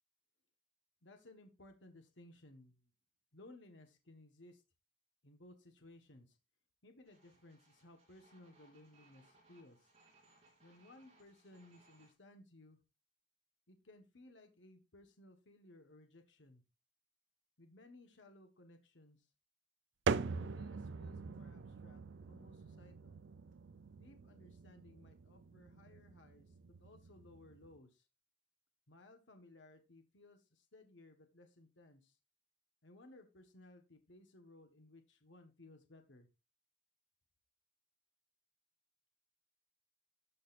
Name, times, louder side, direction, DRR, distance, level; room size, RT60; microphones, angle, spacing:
voice 1, 1.0-2.9 3.3-4.6 5.2-6.4 6.8-9.9 10.6-12.8 13.7-16.6 17.6-19.2 20.2-23.2 24.0-26.5 26.8-28.0 28.9-32.1 32.8-36.3, left 2 dB, 80° left, 5 dB, 1.5 m, -60 dB
sound 1, 7.0-12.1, right 2 dB, 35° right, 3.4 m, -69 dB
sound 2, 20.1-27.8, right 5 dB, 80° right, 0.5 m, -43 dB
12.5 x 6.6 x 2.6 m, 0.28 s
head